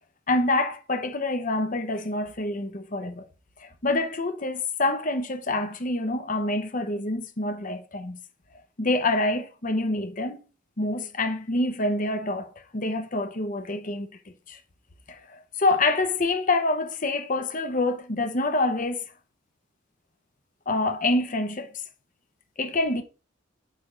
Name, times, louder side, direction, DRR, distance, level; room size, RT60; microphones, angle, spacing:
voice 1, 0.3-3.2 3.6-8.2 8.8-10.4 10.8-14.1 14.5-14.6 15.1-19.0 20.7-21.7 22.6-23.0, left 2 dB, 40° left, 1.0 m, -26 dB
8.4 x 3.5 x 5.1 m
head